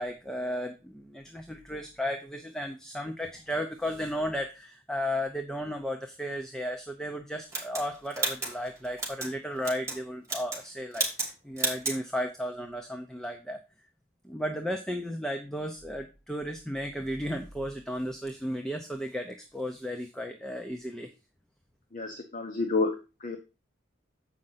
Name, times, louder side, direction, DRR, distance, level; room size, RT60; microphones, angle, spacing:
voice 1, 0.0-13.6 14.2-21.1, equal, 5° left, 4 dB, 0.6 m, -34 dB
sound 1, 7.5-9.3 9.6-10.0 10.2-10.7 10.9-11.3 11.6-12.0, right 3 dB, 15° right, 3.1 m, -32 dB
voice 2, 21.9-23.4, left 3 dB, 40° left, 4 dB, 0.9 m, -30 dB
7.7 x 5.2 x 5.5 m, 0.30 s
head